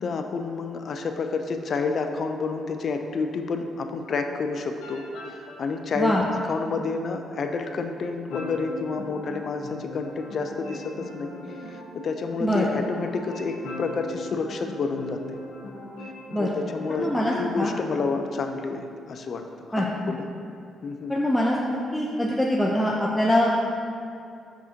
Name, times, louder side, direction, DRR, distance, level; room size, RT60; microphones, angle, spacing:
voice 1, 0.0-5.1 5.4-11.3 11.7-15.2 16.4-19.4 19.8-20.3 20.8-21.1, left 4 dB, 55° left, 5 dB, 0.5 m, -29 dB
sound 1, 4.8-5.6 8.3-18.0, left 1 dB, 85° left, 0.9 m, -40 dB
voice 2, 17.0-17.7 19.7-20.1 21.1-23.5, left 1 dB, 5° left, -4 dB, 0.5 m, -24 dB
6.1 x 5.7 x 2.7 m, 2.5 s
cardioid pair, 90°, 0 cm